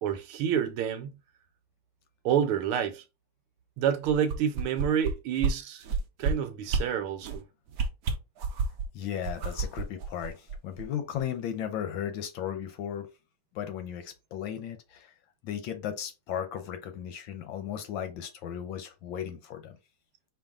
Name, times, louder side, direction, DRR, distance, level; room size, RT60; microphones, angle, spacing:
voice 1, 0.0-1.1 2.2-3.0 3.8-5.8 6.2-7.4, right 9 dB, 80° right, 1.6 m, -28 dB
sound 1, 4.0-5.1 5.4-5.5 5.8-6.3 6.7-6.8 7.2-7.4 7.7-8.8 9.2-10.8 11.2-11.3, right 5 dB, 60° right, 1.0 m, -29 dB
voice 2, 8.9-13.1 13.5-15.1 15.4-19.8, left 9 dB, 70° left, 1.3 m, -36 dB
4.7 x 2.9 x 3.6 m
omnidirectional pair, 2.4 m